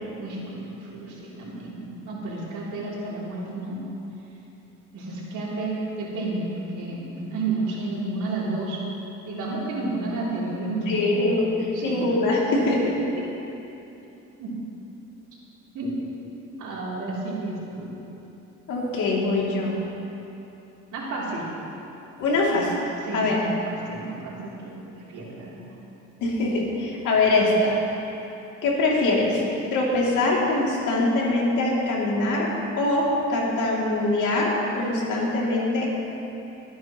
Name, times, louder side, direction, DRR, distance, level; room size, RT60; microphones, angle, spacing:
voice 1, 0.2-3.8 4.9-6.5 6.7-8.8 9.3-11.4 11.7-12.0 14.4-14.6 15.7-16.0 16.6-17.9 20.9-21.5 23.0-25.7, right 2 dB, 80° right, -6 dB, 3.4 m, -31 dB
voice 2, 10.9-11.5 11.8-12.9 18.7-19.8 22.2-22.8 23.1-23.4 26.2-27.8 28.6-29.4 29.7-35.9, left 2 dB, 85° left, -4 dB, 2.8 m, -23 dB
25.5 x 9.3 x 3.1 m, 3.0 s
cardioid pair, 90°, 30 cm